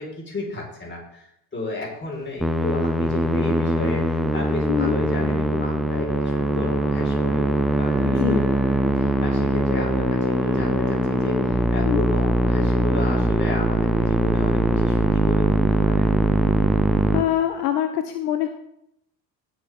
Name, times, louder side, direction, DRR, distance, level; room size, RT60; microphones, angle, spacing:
voice 1, 0.0-8.4 9.0-16.1, left 2 dB, 20° left, -1 dB, 4.4 m, -33 dB
Musical instrument, 2.4-17.2, right 1 dB, ahead, 0.9 m, -21 dB
voice 2, 4.7-5.0 8.0-8.4 11.8-12.1 17.1-18.5, left 11 dB, 65° left, 9 dB, 0.8 m, -24 dB
sound 1, 5.8-14.8, left 1 dB, 85° left, 1.8 m, -38 dB
17.5 x 6.0 x 3.5 m, 0.75 s
figure-of-eight pair, 55°, 49 cm